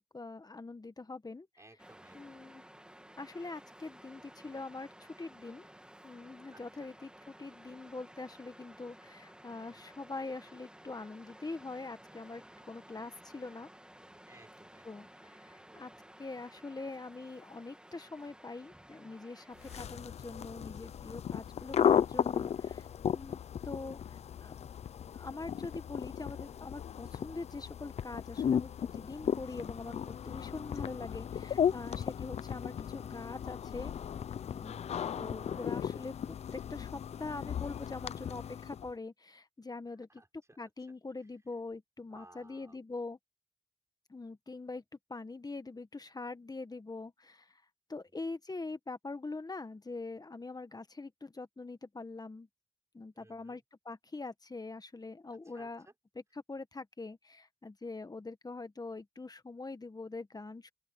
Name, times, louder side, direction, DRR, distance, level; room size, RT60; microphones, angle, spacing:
voice 1, 0.1-1.5 2.1-2.6 3.2-5.7 6.0-13.7 14.8-15.1 15.4-15.9 16.2-23.4 23.6-24.7 25.1-33.9 34.5-34.9 35.2-36.1 36.5-40.2 40.6-43.2 44.1-44.8 45.1-47.6 47.9-52.5 52.9-55.9 56.5-60.7, left 3 dB, 35° left, 1.6 m, -43 dB
voice 2, 1.6-2.5 6.5-6.9 14.2-15.1 15.6-15.8 31.4-31.9 34.7-35.2 40.0-40.7 42.1-42.8 48.1-48.2 53.1-53.6 55.4-55.9, right 2 dB, 25° right, 5.3 m, -60 dB
Waves surf, 1.8-19.9, right 1 dB, 10° right, 2.6 m, -55 dB
sound 1, 19.6-38.9, left 8 dB, 85° left, 0.6 m, -35 dB
open air
cardioid pair, 45°, 11 cm